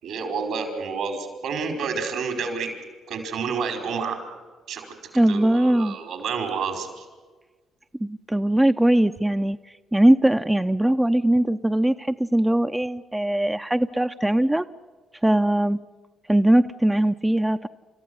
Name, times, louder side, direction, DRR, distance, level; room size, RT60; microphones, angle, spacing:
voice 1, 0.0-2.7 3.1-4.2 4.7-4.8 5.3-7.0, right 5 dB, 75° right, 5 dB, 4.9 m, -29 dB
voice 2, 5.1-6.0 8.0-9.6 9.9-14.6 15.2-15.8 16.3-17.7, right 1 dB, 10° right, 8 dB, 0.7 m, -20 dB
30.0 x 14.0 x 9.7 m, 1.4 s
hypercardioid pair, 50°, 0 cm